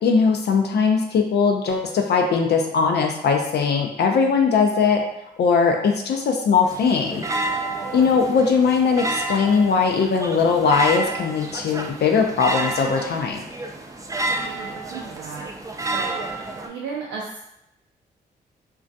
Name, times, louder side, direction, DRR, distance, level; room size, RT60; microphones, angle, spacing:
voice 1, 0.0-5.0 5.4-7.5 7.9-13.5, left 5 dB, 60° left, 3 dB, 0.4 m, -20 dB
sound 1, 6.6-16.7, right 2 dB, 15° right, 0.4 m, -30 dB
voice 2, 7.8-8.1 14.3-15.5 15.9-16.3 16.6-17.4, right 5 dB, 85° right, -4 dB, 0.4 m, -35 dB
2.3 x 2.2 x 2.5 m, 0.82 s
supercardioid pair, 45°, 19 cm